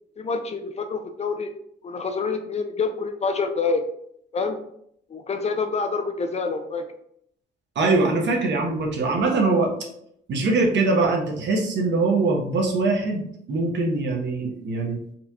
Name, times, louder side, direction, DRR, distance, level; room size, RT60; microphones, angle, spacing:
voice 1, 0.2-1.5 1.8-3.8 4.3-4.6 5.1-6.9, left 4 dB, 35° left, 7 dB, 0.4 m, -27 dB
voice 2, 7.7-9.7 10.3-15.0, right 3 dB, 65° right, 1 dB, 0.9 m, -22 dB
4.1 x 2.8 x 2.3 m, 0.72 s
cardioid pair, 90°, 20 cm